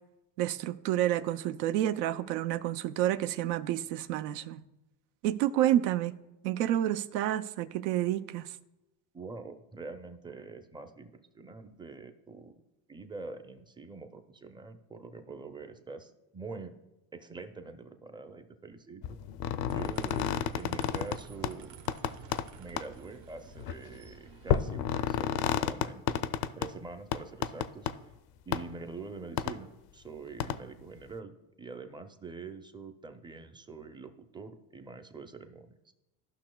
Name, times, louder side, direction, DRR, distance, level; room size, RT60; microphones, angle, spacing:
voice 1, 0.4-4.6 5.2-6.2 6.4-8.6, right 12 dB, 80° right, 0.6 m, -29 dB
voice 2, 9.1-12.5 12.9-16.7 17.1-19.2 19.6-20.3 20.6-21.8 22.6-26.2 26.6-27.9 28.5-35.8, right 4 dB, 10° right, 0.4 m, -45 dB
sound 1, 19.0-21.2 21.4-21.5 21.9-22.4 22.8-22.9 23.6-23.7 24.5-26.7 27.1-27.9 28.5-28.6 29.4-29.5 30.4-30.6, left 9 dB, 50° left, 0.5 m, -30 dB
sound 2, 19.7-25.3, right 6 dB, 60° right, 0.9 m, -51 dB
14.0 x 5.7 x 2.2 m
supercardioid pair, 95°, 49 cm